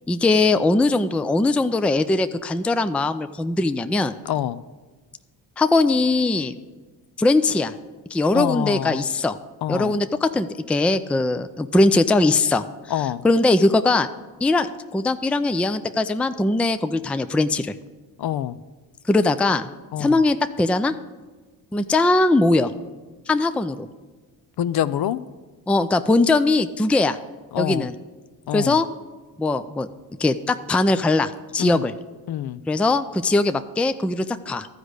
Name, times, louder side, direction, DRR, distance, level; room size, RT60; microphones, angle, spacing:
voice 1, 0.1-4.1 5.6-6.6 7.2-7.7 8.1-9.4 9.7-12.6 13.2-14.1 14.4-17.7 19.1-19.7 20.0-20.9 21.7-22.7 23.3-23.9 25.7-27.2 27.6-27.9 28.5-28.9 29.4-29.9 30.2-31.9 32.7-34.7, left 2 dB, 5° left, 11 dB, 0.4 m, -20 dB
voice 2, 4.3-4.6 8.3-9.1 9.6-9.9 12.9-13.2 18.2-18.6 19.9-20.2 24.6-25.2 27.5-27.9 28.5-28.8 31.6-31.8 32.3-32.6, left 11 dB, 55° left, 15 dB, 0.6 m, -26 dB
12.5 x 5.0 x 8.0 m, 1.3 s
supercardioid pair, 55°, 46 cm